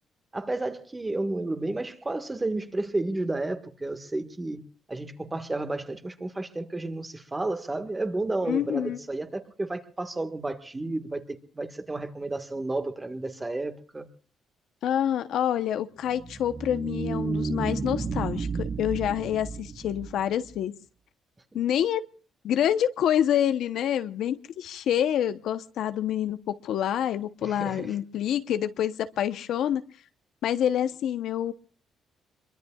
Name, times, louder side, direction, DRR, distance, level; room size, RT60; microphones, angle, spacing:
voice 1, 0.3-14.1 21.5-21.6 27.4-28.0, right 2 dB, 20° right, 1.6 m, -32 dB
voice 2, 8.5-9.0 14.8-20.7 21.5-22.0 22.4-29.8 30.4-31.5, left 10 dB, 75° left, 0.9 m, -27 dB
sound 1, 16.0-20.6, right 4 dB, 35° right, 1.2 m, -32 dB
26.5 x 23.0 x 2.4 m
cardioid pair, 90°, 0 cm